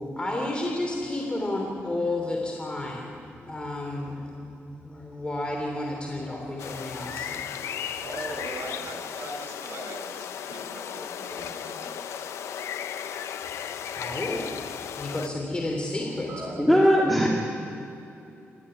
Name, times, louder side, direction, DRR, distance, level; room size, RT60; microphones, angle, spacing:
voice 1, 0.0-8.0 11.3-11.5 13.7-16.4 16.7-16.8, left 2 dB, 20° left, 0 dB, 3.1 m, -32 dB
sound 1, 6.6-15.3, left 8 dB, 85° left, 0.8 m, -35 dB
voice 2, 8.0-12.0 16.2-16.6, right 2 dB, 80° right, 2 dB, 5.6 m, -40 dB
voice 3, 16.6-17.3, equal, ahead, -3 dB, 2.4 m, -19 dB
26.5 x 11.5 x 9.9 m, 2.7 s
cardioid pair, 120°, 5 cm